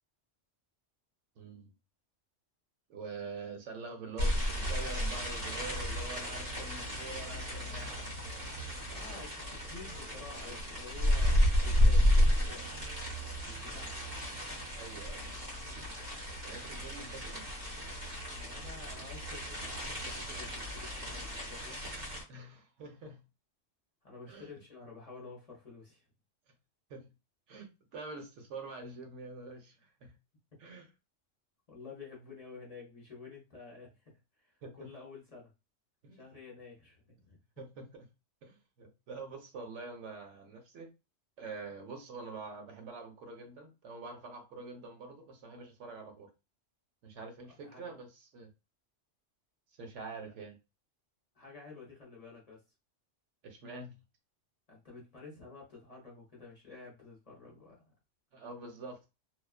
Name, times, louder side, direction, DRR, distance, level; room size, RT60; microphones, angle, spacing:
voice 1, 1.4-1.7 2.9-8.1 14.7-15.3 16.4-17.5 22.3-23.2 24.3-24.5 26.9-27.1 27.5-30.2 30.6-30.9 34.6-34.9 36.0-36.2 37.6-38.1 38.4-40.9 41.4-46.3 47.0-48.5 49.8-50.6 53.4-54.0 58.3-59.1, right 3 dB, 80° right, 1.0 m, -46 dB
sound 1, 4.2-22.2, equal, 55° right, 1.1 m, -32 dB
voice 2, 8.9-12.7 13.5-14.1 18.3-21.8 24.0-26.1 31.7-35.5 36.1-37.4 47.6-47.8 51.3-52.6 54.7-57.8, left 4 dB, 40° left, 0.7 m, -50 dB
2.3 x 2.3 x 2.3 m
omnidirectional pair, 1.2 m